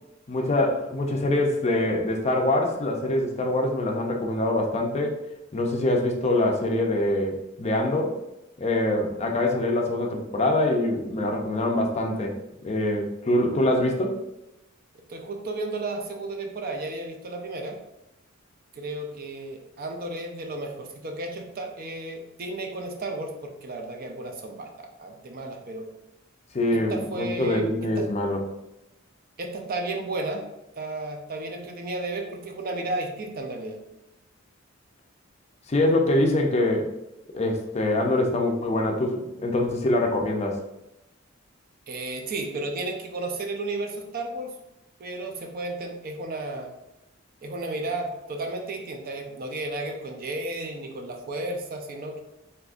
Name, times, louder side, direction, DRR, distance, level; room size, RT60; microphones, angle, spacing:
voice 1, 0.3-5.2 5.5-8.2 8.6-12.3 12.6-14.1 26.5-28.4 35.7-36.9 37.3-40.6, left 1 dB, 30° left, 1 dB, 0.5 m, -24 dB
voice 2, 15.1-17.8 18.7-25.9 26.7-27.7 28.0-28.1 29.4-30.4 30.7-33.8 41.9-44.5 45.0-46.7 47.4-52.2, right 2 dB, 45° right, 3 dB, 0.5 m, -33 dB
3.6 x 2.8 x 2.5 m, 0.91 s
head